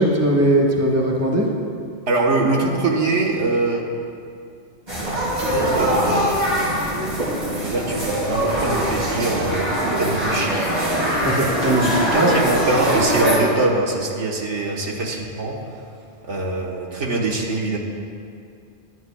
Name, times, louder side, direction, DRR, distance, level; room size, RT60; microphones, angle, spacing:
voice 1, 0.0-1.5 11.2-12.3, right 1 dB, 15° right, -1 dB, 1.1 m, -19 dB
voice 2, 2.1-3.8 5.4-5.9 7.6-10.7 12.1-15.8 16.2-17.8, right 2 dB, 90° right, -1 dB, 1.6 m, -23 dB
sound 1, 4.9-13.4, equal, 40° right, 3.3 m, -22 dB
18.0 x 11.5 x 2.3 m, 2.4 s
omnidirectional pair, 1.2 m